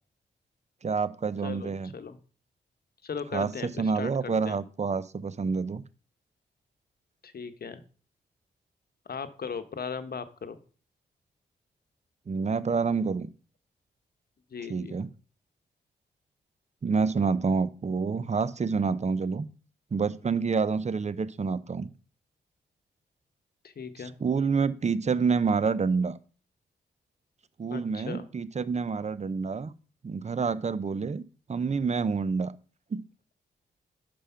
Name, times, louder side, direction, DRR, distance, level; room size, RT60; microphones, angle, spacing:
voice 1, 0.8-1.9 3.3-5.8 12.3-13.3 14.7-15.1 16.8-19.5 19.9-21.9 24.2-26.1 27.6-29.7 30.0-31.2 31.5-32.5 32.9-33.0, right 5 dB, 35° right, 16 dB, 0.6 m, -28 dB
voice 2, 1.4-2.2 3.0-4.6 7.2-7.8 9.1-10.6 14.5-15.0 23.6-24.1 27.7-28.2, left 6 dB, 55° left, 11 dB, 0.9 m, -38 dB
5.5 x 5.1 x 5.6 m, 0.39 s
supercardioid pair, 45°, 19 cm